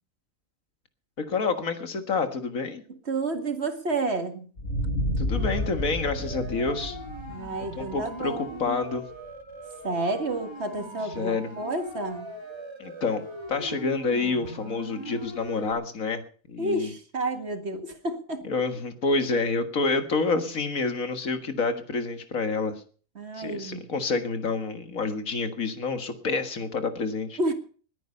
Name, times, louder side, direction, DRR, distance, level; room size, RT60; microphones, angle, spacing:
voice 1, 1.2-2.8 5.2-7.0 7.7-9.1 11.2-11.5 12.8-13.2 13.5-16.2 16.5-16.9 18.4-22.8 23.4-27.4, left 4 dB, 80° left, 8 dB, 2.1 m, -28 dB
voice 2, 3.1-4.5 7.3-8.8 9.8-12.3 16.6-18.4 23.2-23.9 27.4-27.5, right 2 dB, 50° right, 7 dB, 2.2 m, -30 dB
sound 1, 4.6-9.2, left 1 dB, 65° left, 5.2 m, -31 dB
Siren, 5.3-15.7, right 1 dB, 20° right, 2.8 m, -41 dB
21.0 x 9.2 x 5.6 m, 0.42 s
omnidirectional pair, 1.4 m